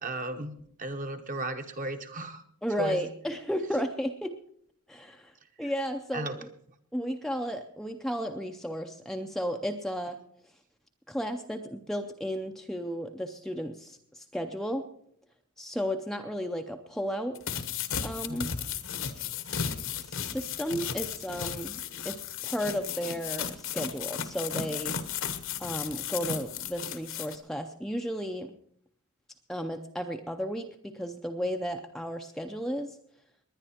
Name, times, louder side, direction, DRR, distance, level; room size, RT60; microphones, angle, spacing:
voice 1, 0.0-2.4 2.8-3.0 6.1-6.3 18.3-18.6, right 2 dB, 35° right, 7 dB, 1.2 m, -35 dB
voice 2, 2.6-4.4 4.9-5.3 5.6-6.5 6.9-10.2 11.1-14.9 15.6-17.4 18.0-18.5 20.1-25.0 25.6-28.5 29.5-33.0, equal, ahead, 4 dB, 0.6 m, -34 dB
sound 1, 17.4-27.4, left 7 dB, 60° left, 1.1 m, -35 dB
20.0 x 10.5 x 4.4 m, 0.66 s
head